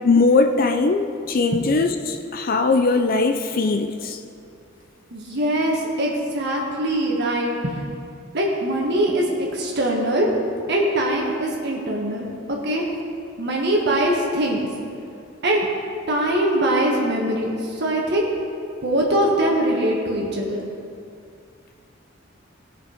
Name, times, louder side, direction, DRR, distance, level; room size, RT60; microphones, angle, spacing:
voice 1, 0.0-4.2, left 3 dB, 45° left, 7 dB, 0.5 m, -20 dB
voice 2, 5.1-7.8 8.3-10.3 10.7-12.9 13.4-14.7 15.4-15.7 16.1-18.3 18.8-20.7, right 1 dB, 55° right, -2 dB, 1.5 m, -22 dB
17.5 x 6.2 x 5.0 m, 2.4 s
head